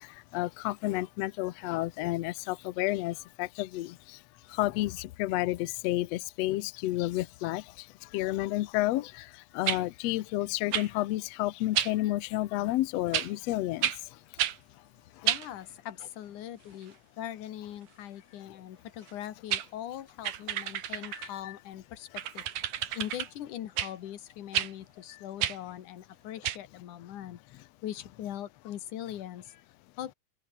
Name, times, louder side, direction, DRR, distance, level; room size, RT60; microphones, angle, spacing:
voice 1, 0.0-4.2 4.5-14.4 15.1-15.3 21.1-21.6 22.8-23.0 25.1-25.2, left 16 dB, 85° left, 1.4 m, -31 dB
sound 1, 9.7-9.8 10.7-10.9 11.8-11.9 13.1-13.3 13.8-14.0 14.4-14.6 15.3-15.5 19.1-19.2 19.5-19.7 20.2-21.3 22.2-23.3 23.8-23.9 24.5-24.7 25.4-25.6 26.4-26.6, right 11 dB, 70° right, 2.9 m, -30 dB
voice 2, 15.2-22.1 22.3-22.4 22.9-29.6 30.0-30.1, left 11 dB, 65° left, 2.8 m, -41 dB
omnidirectional pair, 3.9 m